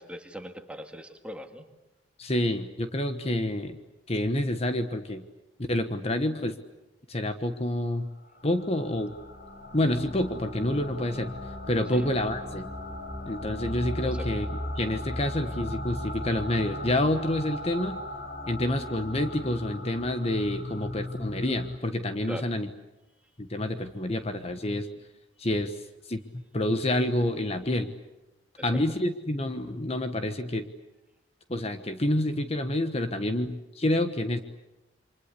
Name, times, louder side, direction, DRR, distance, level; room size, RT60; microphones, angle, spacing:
voice 1, 0.0-1.7 11.9-12.1 14.0-14.3 22.2-22.5 28.6-28.8, equal, 5° right, 5 dB, 2.0 m, -40 dB
voice 2, 2.2-3.8 4.1-5.2 5.7-6.5 7.1-8.1 8.4-9.1 9.7-11.3 11.7-12.7 13.2-14.5 14.8-18.0 18.5-22.7 23.4-24.9 25.4-25.7 26.1-27.9 28.6-30.7 31.5-34.4, left 1 dB, 35° left, 8 dB, 1.3 m, -28 dB
sound 1, 8.2-21.8, left 1 dB, 55° left, 5.5 m, -37 dB
28.5 x 25.0 x 8.4 m, 0.97 s
head